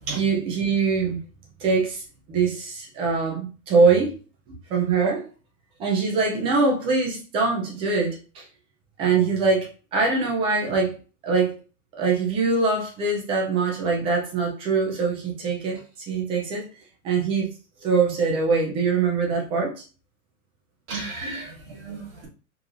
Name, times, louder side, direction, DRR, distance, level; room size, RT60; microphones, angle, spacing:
voice 1, 0.1-1.2 1.6-2.0 2.3-4.1 4.5-5.3 5.8-8.4 9.0-10.9 11.2-11.6 12.0-16.6 17.0-17.5 17.8-19.8, right 4 dB, 15° right, 0.4 m, -23 dB
voice 2, 20.9-22.3, right 3 dB, 35° right, 2.3 m, -34 dB
4.6 x 3.2 x 2.5 m
supercardioid pair, 150°, 44 cm